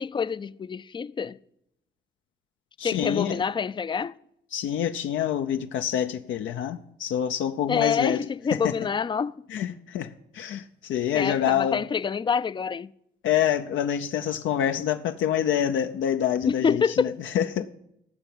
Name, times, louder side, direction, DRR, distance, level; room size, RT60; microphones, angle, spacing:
voice 1, 0.0-1.4 2.8-4.1 7.7-9.4 11.1-12.9 16.4-17.2, left 6 dB, 25° left, 0.4 m, -26 dB
voice 2, 2.8-3.4 4.5-8.2 8.5-8.7 9.5-11.8 13.2-17.7, left 9 dB, 75° left, 0.6 m, -27 dB
14.5 x 5.7 x 8.8 m
cardioid pair, 90°, 20 cm